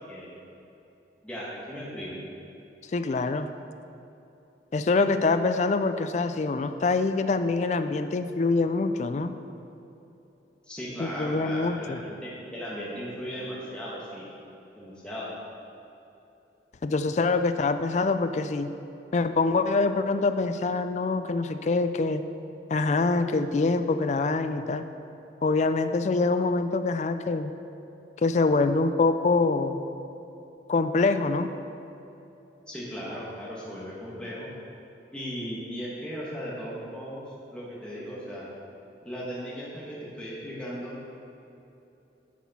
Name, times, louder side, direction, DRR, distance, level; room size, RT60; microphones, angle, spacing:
voice 1, 1.2-2.2 10.6-14.3 14.7-15.3 32.7-34.5 35.1-38.5 39.0-41.0, equal, 5° left, -7 dB, 1.4 m, -37 dB
voice 2, 2.9-3.5 4.7-9.3 11.0-12.0 16.8-18.7 19.1-22.2 22.7-24.8 25.4-27.5 28.2-29.8 30.7-31.5, left 3 dB, 40° left, 9 dB, 0.3 m, -25 dB
10.5 x 6.0 x 4.2 m, 2.9 s
head